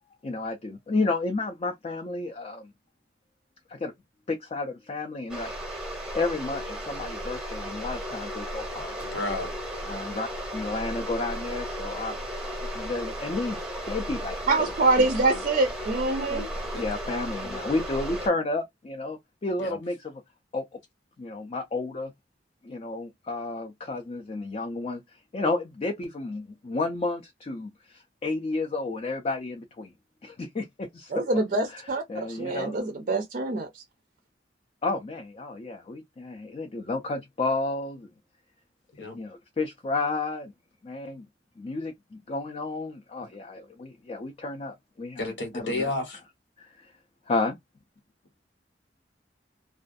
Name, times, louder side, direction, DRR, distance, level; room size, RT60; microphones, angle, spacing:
voice 1, 0.2-2.7 3.7-3.9 4.3-5.5 5.8-5.9 6.1-9.1 9.8-12.1 12.7-13.6 13.9-14.7 15.0-15.1 16.3-16.5 16.7-20.2 20.5-20.6 21.2-22.1 22.6-25.0 25.3-29.9 30.2-31.1 31.7-31.8 32.1-32.8 34.8-38.1 39.0-40.5 40.8-41.3 41.6-45.9 46.6-46.9 47.3-47.6, left 3 dB, 35° left, 0.4 m, -31 dB
sound 1, 5.3-18.3, equal, 5° right, 0.7 m, -35 dB
voice 2, 9.1-9.5 16.7-16.8 19.6-19.8 39.0-39.2 45.2-46.2, left 2 dB, 85° left, 1.2 m, -31 dB
voice 3, 14.5-16.5 31.1-33.8, right 2 dB, 45° right, 0.4 m, -25 dB
2.4 x 2.2 x 2.5 m
head